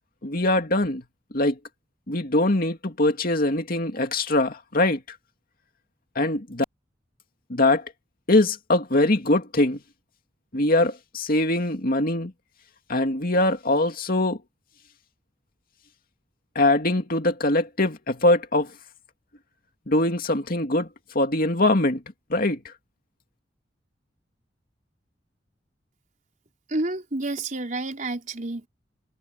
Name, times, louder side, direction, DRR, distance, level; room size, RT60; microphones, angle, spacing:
voice 1, 0.2-1.0 1.3-1.6 2.1-5.2 6.2-6.6 7.5-7.9 8.3-9.8 10.5-12.3 12.9-14.4 16.5-18.7 19.9-20.9 21.1-22.0 22.3-22.7, left 2 dB, 55° left, 2.5 m, -22 dB
voice 2, 26.7-28.7, right 2 dB, 45° right, 4.1 m, -29 dB
head